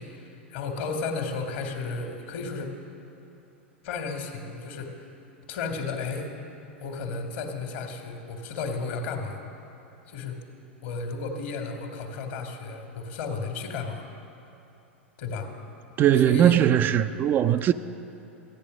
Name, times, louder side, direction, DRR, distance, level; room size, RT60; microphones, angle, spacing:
voice 1, 0.0-2.7 3.8-5.1 5.5-6.3 6.8-9.4 10.1-10.4 10.8-14.0 15.2-15.5 16.2-16.6, left 4 dB, 55° left, 1.6 m, -33 dB
voice 2, 16.0-17.7, right 10 dB, 30° right, 0.4 m, -20 dB
15.0 x 8.9 x 6.2 m
figure-of-eight pair, 90°, 7 cm